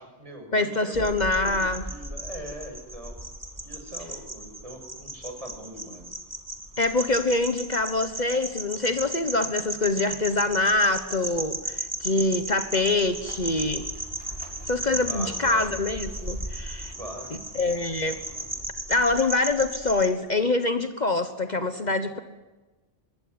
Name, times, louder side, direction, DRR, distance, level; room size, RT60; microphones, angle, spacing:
voice 1, 0.0-1.1 1.4-1.5 1.8-3.1 3.6-6.0 15.0-15.6 17.0-17.3, equal, 35° right, 3 dB, 7.0 m, -41 dB
voice 2, 0.5-1.8 6.8-13.9 14.7-16.9 17.5-18.2 18.9-22.2, left 2 dB, 45° left, 9 dB, 1.4 m, -25 dB
sound 1, 0.9-20.1, right 1 dB, 15° right, 2.5 m, -36 dB
sound 2, 12.9-18.7, equal, 65° left, 5.7 m, -48 dB
25.5 x 20.5 x 9.8 m, 1.2 s
omnidirectional pair, 1.1 m